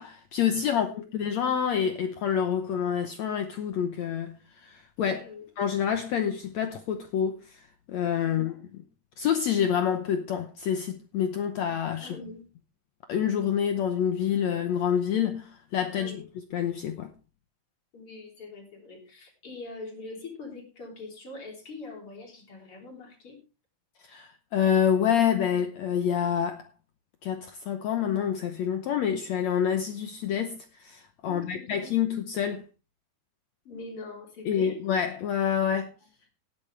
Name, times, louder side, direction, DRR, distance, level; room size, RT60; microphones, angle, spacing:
voice 1, 0.0-5.3 5.6-7.6 7.9-8.5 9.2-12.1 13.1-16.2 16.5-17.1 24.1-26.6 27.2-32.6 34.4-35.9, left 8 dB, 80° left, 1.5 m, -27 dB
voice 2, 0.7-1.0 5.1-5.5 8.2-8.6 12.0-12.4 16.0-16.3 17.9-23.4 31.2-32.0 33.7-34.9, left 3 dB, 35° left, 3.9 m, -43 dB
17.5 x 8.9 x 3.3 m
omnidirectional pair, 4.4 m